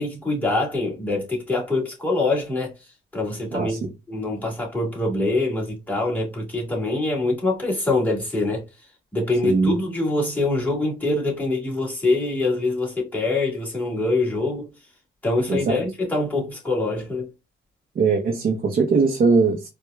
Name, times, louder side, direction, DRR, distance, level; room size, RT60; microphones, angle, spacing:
voice 1, 0.0-2.7 3.1-3.8 4.1-8.6 9.1-14.7 15.2-17.3, left 2 dB, 10° left, 1.9 m, -24 dB
voice 2, 9.4-9.8 15.5-15.8 18.0-19.7, right 4 dB, 45° right, 0.7 m, -20 dB
4.5 x 2.2 x 2.3 m
cardioid pair, 90°, 20 cm